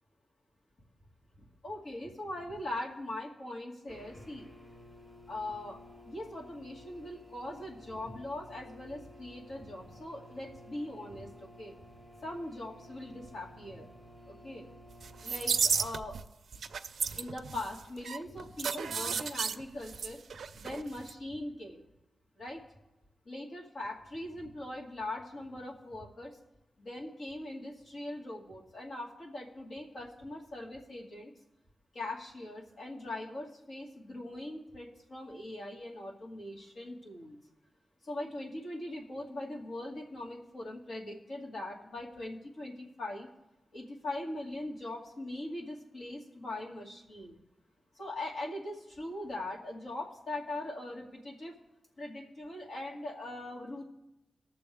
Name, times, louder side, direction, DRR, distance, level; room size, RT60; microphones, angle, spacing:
voice 1, 1.6-4.5 5.3-11.7 12.2-13.9 14.3-14.7 15.2-16.2 17.2-20.2 20.5-21.8 22.4-22.6 23.3-26.4 26.8-31.3 31.9-37.4 38.0-43.3 43.7-47.4 48.0-51.5 52.0-53.8, left 1 dB, 55° left, -1 dB, 2.2 m, -41 dB
sound 1, 3.9-15.6, left 1 dB, 25° left, 1.3 m, -54 dB
sound 2, 15.0-16.3 16.5-20.8 21.1-21.2, right 6 dB, 70° right, 0.4 m, -33 dB
19.5 x 6.9 x 3.5 m, 0.94 s
wide cardioid pair, 170°, 0 cm